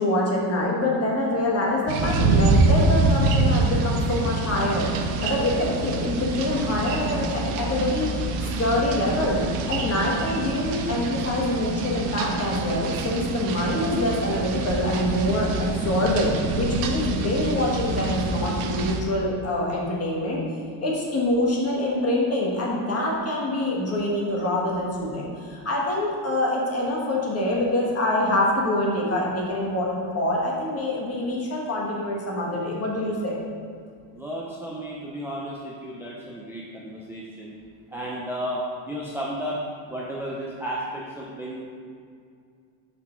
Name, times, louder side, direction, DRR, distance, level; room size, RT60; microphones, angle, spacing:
voice 1, 0.0-9.4 9.7-20.4 20.8-33.4, left 1 dB, 30° left, -3 dB, 1.3 m, -25 dB
sound 1, 1.9-19.0, right 3 dB, 85° right, 0.7 m, -25 dB
voice 2, 34.1-37.5 37.9-38.6 38.9-39.6 39.9-41.6, equal, 5° right, -5 dB, 0.5 m, -33 dB
5.1 x 4.3 x 4.4 m, 2.2 s
cardioid pair, 115°, 47 cm